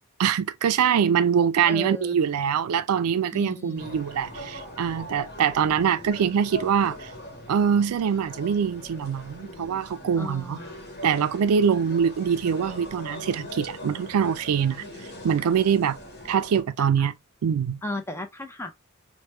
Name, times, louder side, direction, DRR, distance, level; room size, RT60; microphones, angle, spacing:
voice 1, 0.2-7.1 7.5-10.6 11.0-14.8 15.2-16.0 16.3-17.1 17.4-17.8, right 7 dB, 90° right, 0.4 m, -24 dB
voice 2, 1.6-2.2 3.3-4.0 10.2-10.9 16.8-17.1 17.8-18.7, left 1 dB, 10° left, 0.5 m, -36 dB
sound 1, 3.8-16.6, left 1 dB, 45° left, 1.1 m, -41 dB
3.1 x 2.1 x 3.1 m
head